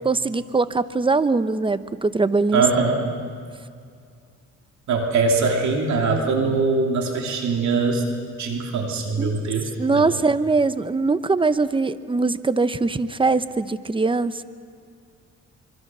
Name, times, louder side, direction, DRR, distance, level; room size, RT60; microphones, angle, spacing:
voice 1, 0.0-2.6 9.2-9.4 9.8-14.4, right 3 dB, 15° right, 13 dB, 0.8 m, -22 dB
voice 2, 2.5-3.0 4.9-8.0 8.4-10.1, right 4 dB, 70° right, 1 dB, 3.0 m, -22 dB
25.5 x 23.5 x 6.2 m, 2.3 s
cardioid pair, 90°, 30 cm